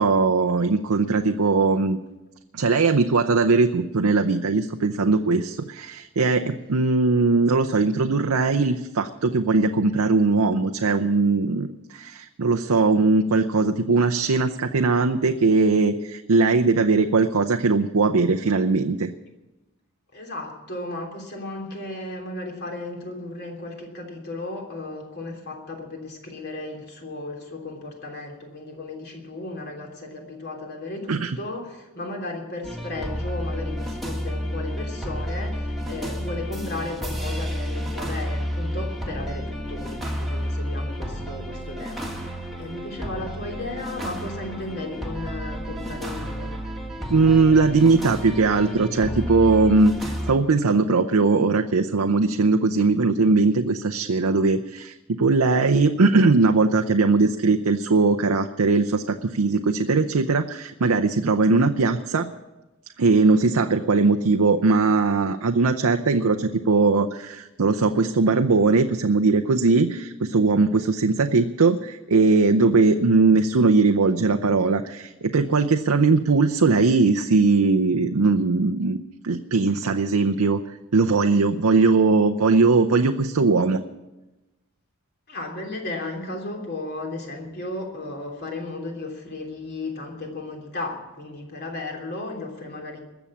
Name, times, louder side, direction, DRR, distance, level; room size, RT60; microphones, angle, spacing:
voice 1, 0.0-2.0 2.5-19.1 31.1-31.4 47.1-62.3 63.0-79.0 79.2-80.6 80.9-83.8, right 3 dB, 85° right, 6 dB, 0.7 m, -20 dB
voice 2, 20.1-46.6 85.3-93.0, left 2 dB, 50° left, 1 dB, 3.2 m, -35 dB
sound 1, 32.6-50.3, equal, ahead, 1.8 m, -31 dB
21.0 x 7.2 x 8.5 m, 1.0 s
head